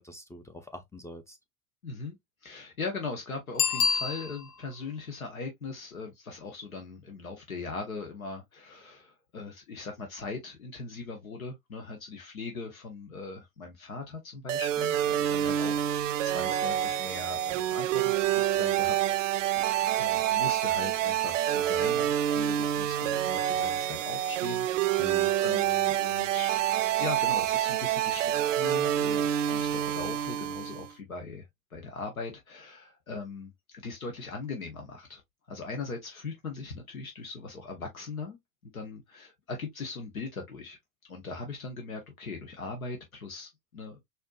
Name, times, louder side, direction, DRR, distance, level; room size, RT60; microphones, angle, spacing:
voice 1, 0.0-1.4 19.6-19.9 25.0-25.3, left 2 dB, 5° left, 0.5 m, -45 dB
voice 2, 1.8-2.2 2.4-19.0 19.9-26.7 27.0-31.5 31.7-35.2 35.5-38.4 38.6-40.8 41.1-44.0, left 4 dB, 80° left, 0.9 m, -40 dB
Bicycle bell, 3.5-4.7 10.2-10.3, left 6 dB, 50° left, 1.0 m, -28 dB
sound 1, 14.5-30.9, right 11 dB, 65° right, 0.5 m, -27 dB
4.3 x 2.7 x 2.2 m
figure-of-eight pair, 75°, 41 cm